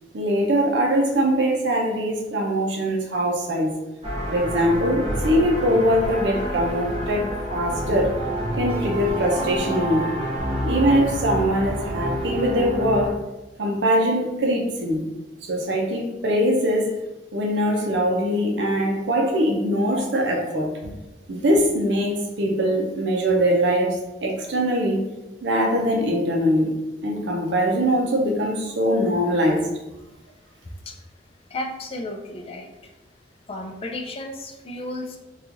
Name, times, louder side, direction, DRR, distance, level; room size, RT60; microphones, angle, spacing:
voice 1, 0.1-3.7 4.3-8.2 8.6-10.1 10.6-13.2 13.6-15.1 15.4-16.9 17.3-20.9 21.3-25.1 25.4-29.7, equal, 75° right, 1 dB, 0.6 m, -22 dB
sound 1, 4.0-13.1, equal, 30° right, 0.9 m, -28 dB
voice 2, 31.5-32.9 33.5-35.2, left 1 dB, 35° left, 3 dB, 0.3 m, -33 dB
3.0 x 2.4 x 3.8 m, 1.0 s
head